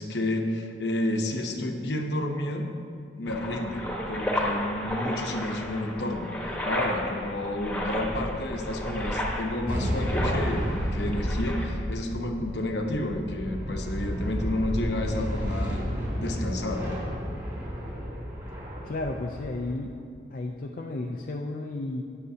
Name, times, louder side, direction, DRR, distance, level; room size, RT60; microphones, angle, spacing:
voice 1, 0.0-2.7 3.2-6.3 6.6-15.8 16.2-16.9, left 1 dB, 70° left, 3 dB, 0.9 m, -30 dB
sound 1, 3.3-11.7, equal, 5° left, 1.2 m, -32 dB
sound 2, 9.7-19.8, equal, 25° right, 2.5 m, -32 dB
voice 2, 18.8-20.0 20.3-22.0, left 2 dB, 45° left, 1 dB, 0.4 m, -33 dB
19.5 x 6.6 x 2.8 m, 2.3 s
head